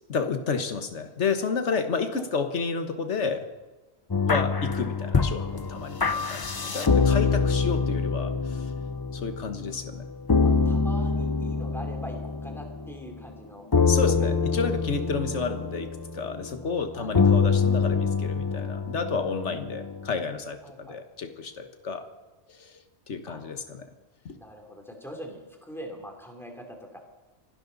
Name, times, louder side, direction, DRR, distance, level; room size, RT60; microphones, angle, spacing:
voice 1, 0.1-3.5 4.3-8.7 9.1-10.0 13.9-15.9 16.1-22.0 22.5-22.8 23.1-23.9 24.3-24.4, left 5 dB, 85° left, 8 dB, 1.6 m, -30 dB
sound 1, 4.1-13.1 13.7-20.2, left 5 dB, 30° left, 0.5 m, -25 dB
voice 2, 6.7-7.1 10.4-13.6 14.2-14.3 16.9-17.3 20.6-21.0 23.3-23.4 24.3-27.0, equal, ahead, 1 dB, 2.9 m, -43 dB
26.0 x 11.5 x 4.0 m, 1.2 s
omnidirectional pair, 1.2 m